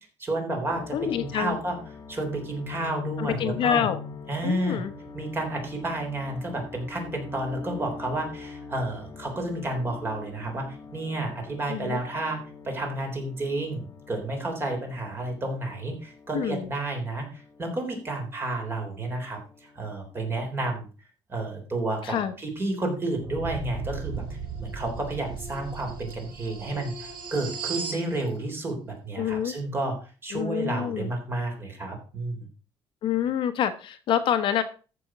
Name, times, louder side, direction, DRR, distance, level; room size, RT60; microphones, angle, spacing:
voice 1, 0.2-1.8 2.1-3.9 4.3-4.8 5.1-20.9 21.3-32.5, right 2 dB, 25° right, 3 dB, 3.7 m, -31 dB
sound 1, 0.7-19.2 19.5-20.5, left 5 dB, 25° left, 2.0 m, -43 dB
voice 2, 0.9-1.6 3.2-4.0 4.4-4.9 11.7-12.0 16.3-16.7 22.0-22.3 29.2-29.5 30.3-31.1 33.0-34.6, left 9 dB, 55° left, 9 dB, 1.1 m, -27 dB
sound 2, 23.2-28.1, right 4 dB, 55° right, 3.3 m, -36 dB
14.0 x 6.1 x 5.1 m, 0.36 s
cardioid pair, 160°, 10 cm